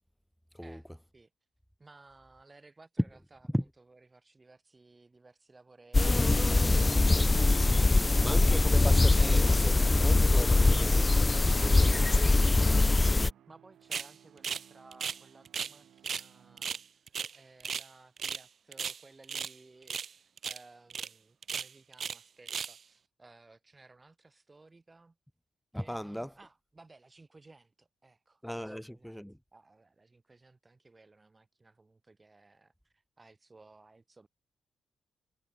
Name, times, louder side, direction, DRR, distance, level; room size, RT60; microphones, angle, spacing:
voice 1, 1.8-3.4 3.9-7.5 7.8-9.2 12.8-13.1 13.5-25.1 25.7-29.2 29.5-34.3, right 3 dB, 30° right, 4.8 m, -58 dB
sound 1, 5.9-13.3, left 2 dB, 25° left, 0.5 m, -23 dB
sound 2, 6.4-17.1, right 10 dB, 75° right, 4.9 m, -60 dB
voice 2, 8.2-12.5 25.7-26.3 28.4-29.4, equal, ahead, 1.0 m, -38 dB
sound 3, 13.9-14.1 14.4-14.7 14.9-15.7 16.0-16.3 16.6-17.9 18.2-18.4 18.7-19.5 19.9-20.1 20.4-20.6 20.9-21.1 21.4-22.2 22.5-22.8, right 7 dB, 60° right, 1.3 m, -36 dB
supercardioid pair, 50°, 0 cm